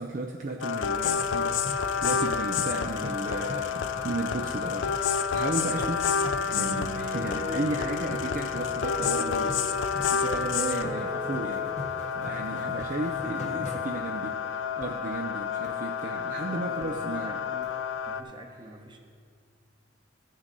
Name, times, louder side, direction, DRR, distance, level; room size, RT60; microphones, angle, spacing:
voice 1, 0.0-9.6 10.0-11.8 12.1-17.3, right 2 dB, 45° right, 1 dB, 0.6 m, -34 dB
sound 1, 0.6-18.2, left 6 dB, 80° left, 0.5 m, -30 dB
sound 2, 1.2-15.4 15.6-15.7 16.0-16.1 16.4-16.8 17.1-17.2 17.4-18.0, left 1 dB, 40° left, 0.8 m, -42 dB
voice 2, 2.8-3.3 10.7-11.1 16.4-17.8 18.1-19.0, right 1 dB, 25° right, 3 dB, 1.0 m, -46 dB
sound 3, 6.5-11.8, right 2 dB, 75° right, 1.8 m, -37 dB
14.5 x 6.3 x 4.0 m, 2.1 s
head